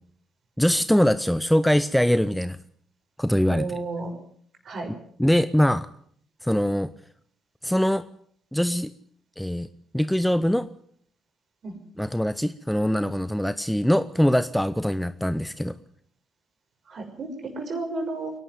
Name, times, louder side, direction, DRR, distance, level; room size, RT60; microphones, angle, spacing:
voice 1, 0.6-2.6 3.2-3.7 5.2-5.9 6.4-6.9 7.6-8.0 8.5-8.9 9.4-9.7 9.9-10.7 12.0-15.8, equal, 5° left, 14 dB, 0.8 m, -22 dB
voice 2, 3.5-4.1 4.6-4.9 11.6-11.7 16.9-18.3, right 3 dB, 50° right, 4 dB, 6.1 m, -32 dB
24.5 x 11.5 x 9.5 m, 0.65 s
figure-of-eight pair, 45°, 0 cm